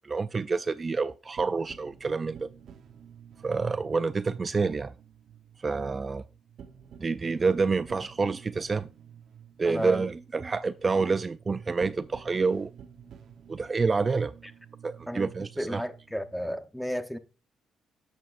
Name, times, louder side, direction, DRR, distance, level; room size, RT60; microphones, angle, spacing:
voice 1, 0.0-2.5 3.4-4.9 5.6-6.2 7.0-8.9 9.6-12.7 13.5-14.4 14.8-15.8, right 4 dB, 30° right, 0.3 m, -28 dB
sound 1, 1.4-16.6, right 8 dB, 65° right, 1.0 m, -52 dB
voice 2, 9.7-10.1 15.1-15.3 15.6-17.2, equal, ahead, 0.9 m, -32 dB
11.5 x 7.6 x 2.5 m
cardioid pair, 90°, 0 cm